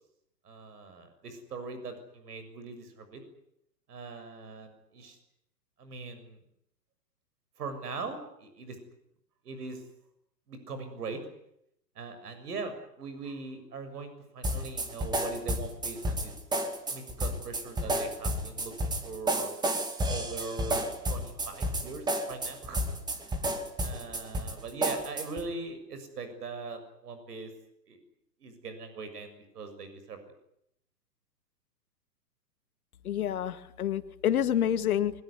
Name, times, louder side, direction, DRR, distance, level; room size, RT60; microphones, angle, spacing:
voice 1, 0.4-3.2 3.9-5.2 5.8-6.4 7.6-8.8 9.5-9.8 10.5-11.2 12.0-16.3 16.9-19.5 20.1-22.8 23.1-27.5 27.9-28.0 28.4-30.2, right 4 dB, 65° right, 9 dB, 6.9 m, -41 dB
sound 1, 14.4-25.5, right 1 dB, 10° right, 2.4 m, -31 dB
voice 2, 33.0-35.1, left 10 dB, 60° left, 12 dB, 2.0 m, -28 dB
23.0 x 21.5 x 9.7 m, 0.76 s
hypercardioid pair, 130°, 49 cm